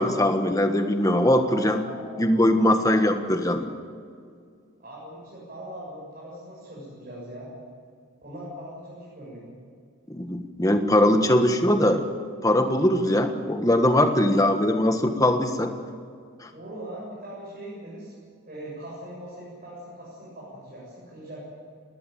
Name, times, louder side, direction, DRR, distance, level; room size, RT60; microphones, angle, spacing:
voice 1, 0.0-1.8 2.2-3.7 10.1-12.1 12.4-15.7 16.4-16.5, left 1 dB, 15° left, 6 dB, 1.4 m, -21 dB
voice 2, 1.5-2.3 2.8-3.0 4.8-7.5 8.2-9.6 16.5-18.1 18.5-21.4, right 1 dB, 40° right, -7 dB, 7.8 m, -40 dB
20.0 x 19.0 x 9.3 m, 2.2 s
head